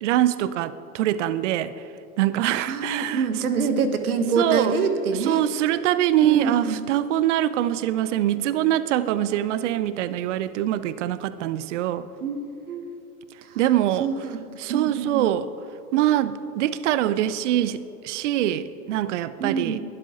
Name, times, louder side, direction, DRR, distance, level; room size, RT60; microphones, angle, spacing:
voice 1, 0.0-1.7 2.2-3.3 4.4-4.8 5.1-12.1 13.6-14.1 14.6-15.5 15.9-19.8, right 12 dB, 50° right, 0.7 m, -23 dB
voice 2, 2.7-5.5 6.2-6.8 12.2-12.9 13.4-13.6 14.0-14.4 14.7-15.3 19.4-19.8, right 5 dB, 70° right, 1.5 m, -26 dB
21.0 x 12.0 x 3.8 m
figure-of-eight pair, 100°, 45 cm